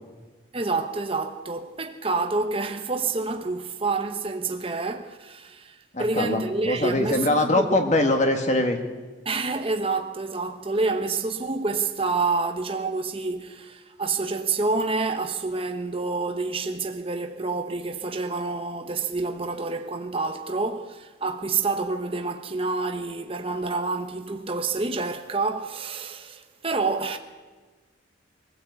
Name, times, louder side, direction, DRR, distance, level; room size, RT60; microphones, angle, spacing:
voice 1, 0.5-7.8 9.2-27.2, right 3 dB, 30° right, 1.0 m, -28 dB
voice 2, 5.9-8.8, left 1 dB, 35° left, 1.8 m, -22 dB
23.0 x 14.5 x 8.3 m
head